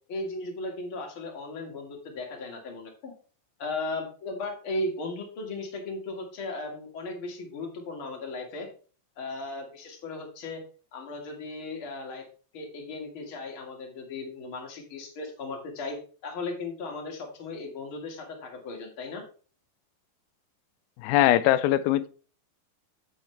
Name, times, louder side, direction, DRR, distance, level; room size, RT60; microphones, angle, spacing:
voice 1, 0.1-3.1 3.6-8.7 9.2-10.6 10.9-12.3 12.5-19.2, left 2 dB, 40° left, 2.4 m, -36 dB
voice 2, 21.0-22.1, left 13 dB, 85° left, 2.4 m, -21 dB
8.6 x 8.3 x 3.3 m
omnidirectional pair, 4.2 m